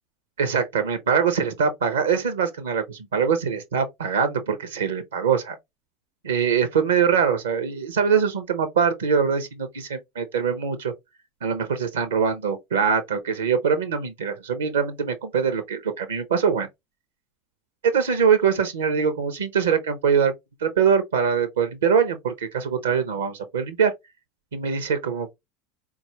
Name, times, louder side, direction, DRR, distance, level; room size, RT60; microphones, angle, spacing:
voice 1, 0.4-5.6 6.2-10.9 11.4-16.7 17.8-20.3 20.6-23.9 24.5-25.3, right 6 dB, 70° right, 0.6 m, -23 dB
4.0 x 2.3 x 2.8 m
figure-of-eight pair, 80°, 0 cm